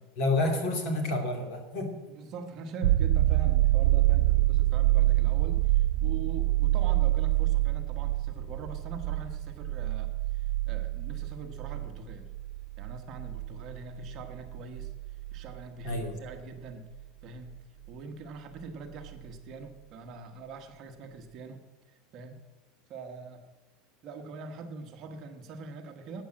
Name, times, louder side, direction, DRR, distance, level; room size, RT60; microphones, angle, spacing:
voice 1, 0.2-2.0 15.8-16.2, left 2 dB, 45° left, 4 dB, 2.6 m, -29 dB
voice 2, 2.1-12.3 12.8-14.9 15.3-16.9 17.2-17.6 17.9-21.7 22.1-22.4 22.9-23.5 24.0-26.2, right 4 dB, 30° right, 5 dB, 1.2 m, -43 dB
sound 1, 2.8-16.3 19.0-19.1, right 16 dB, 90° right, 0.5 m, -26 dB
13.5 x 8.6 x 7.6 m, 1.2 s
supercardioid pair, 175°, 0 cm